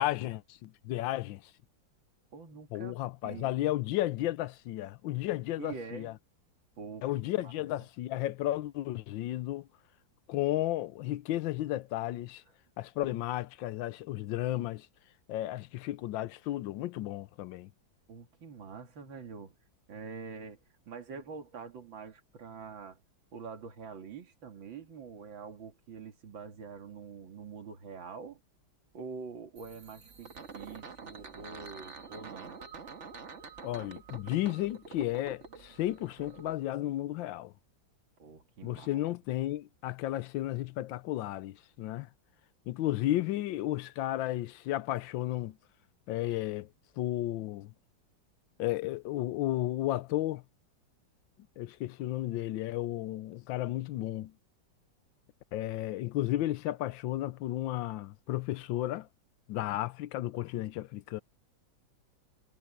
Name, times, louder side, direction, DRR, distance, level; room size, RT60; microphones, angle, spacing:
voice 1, 0.0-1.5 2.7-6.1 7.0-9.7 10.3-12.4 12.8-14.9 15.3-17.7 33.6-37.5 38.6-42.1 42.7-45.6 46.1-46.7 47.0-47.7 48.6-50.4 51.6-54.3 55.5-59.1 59.5-61.2, left 15 dB, 80° left, 1.4 m, -33 dB
voice 2, 2.3-3.0 3.2-3.5 5.6-6.1 6.8-7.0 7.4-7.7 18.1-19.6 19.9-20.6 20.9-23.0 23.3-28.4 28.9-32.6 38.2-39.0, right 5 dB, 80° right, 2.9 m, -45 dB
sound 1, 29.6-36.5, right 5 dB, 40° right, 1.6 m, -47 dB
omnidirectional pair, 2.1 m